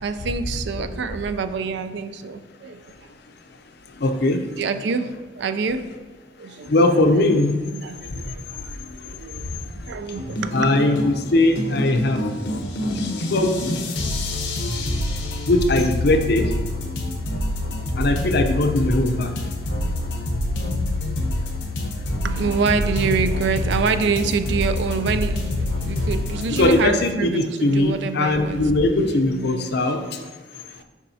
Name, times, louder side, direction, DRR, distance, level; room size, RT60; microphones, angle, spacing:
voice 1, 0.0-3.1 4.6-5.9 6.4-7.3 7.7-8.7 9.0-10.7 22.2-28.7 29.0-30.8, right 5 dB, 70° right, 10 dB, 0.4 m, -27 dB
voice 2, 3.9-4.5 6.7-7.6 8.1-10.0 10.5-12.2 12.9-13.7 15.5-16.5 18.0-20.1 26.6-30.2, left 2 dB, 60° left, 6 dB, 0.6 m, -21 dB
sound 1, 10.2-26.7, left 1 dB, 85° left, 0.9 m, -26 dB
7.1 x 5.5 x 2.7 m, 1.2 s
head